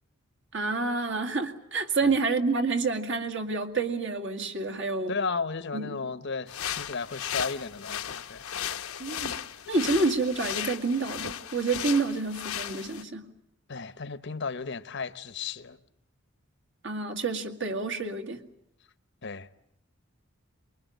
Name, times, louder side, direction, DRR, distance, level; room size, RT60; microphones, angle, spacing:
voice 1, 0.5-5.1 5.7-6.1 9.0-9.3 9.7-13.3 16.8-18.4, right 3 dB, 55° right, 2.0 m, -28 dB
voice 2, 5.1-8.7 13.7-15.8 19.2-19.5, left 4 dB, 55° left, 0.9 m, -34 dB
sound 1, 6.5-13.0, left 9 dB, 80° left, 1.0 m, -36 dB
24.0 x 22.0 x 9.2 m
head